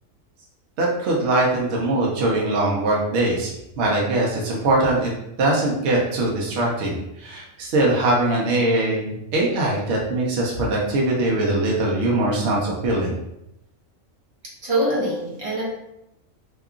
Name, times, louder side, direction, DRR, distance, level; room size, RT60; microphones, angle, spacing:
voice 1, 0.8-3.5 3.8-5.1 5.4-13.2, right 2 dB, 65° right, -3 dB, 0.8 m, -22 dB
voice 2, 14.6-15.8, right 1 dB, 35° right, -5 dB, 0.6 m, -24 dB
2.8 x 2.3 x 2.3 m, 0.84 s
omnidirectional pair, 1.4 m